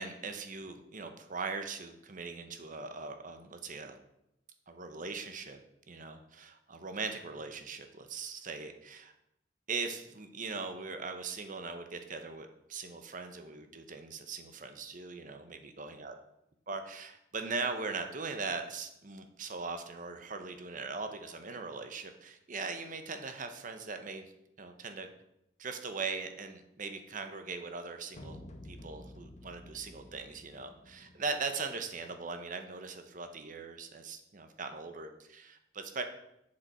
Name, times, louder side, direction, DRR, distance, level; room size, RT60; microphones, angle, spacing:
voice 1, 0.0-4.0 4.7-5.6 5.9-9.1 9.7-16.1 16.7-24.3 24.6-25.1 25.6-28.4 28.6-36.0, right 4 dB, 45° right, 7 dB, 0.9 m, -40 dB
sound 1, 28.1-32.2, left 1 dB, 40° left, 0.9 m, -51 dB
7.5 x 6.8 x 4.3 m, 0.81 s
head